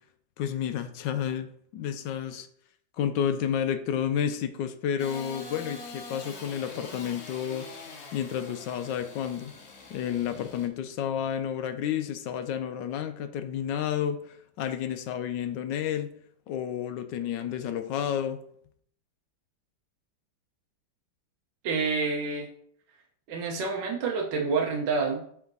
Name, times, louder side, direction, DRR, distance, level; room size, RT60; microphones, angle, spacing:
voice 1, 0.4-2.5 3.0-7.7 8.1-9.5 9.9-16.1 16.5-18.4, left 9 dB, 75° left, 9 dB, 1.2 m, -31 dB
Engine starting / Sawing, 5.0-10.7, left 3 dB, 45° left, 1.0 m, -44 dB
voice 2, 21.6-22.5 23.3-25.2, right 4 dB, 70° right, 0 dB, 1.4 m, -28 dB
8.5 x 3.6 x 3.9 m, 0.64 s
omnidirectional pair, 2.1 m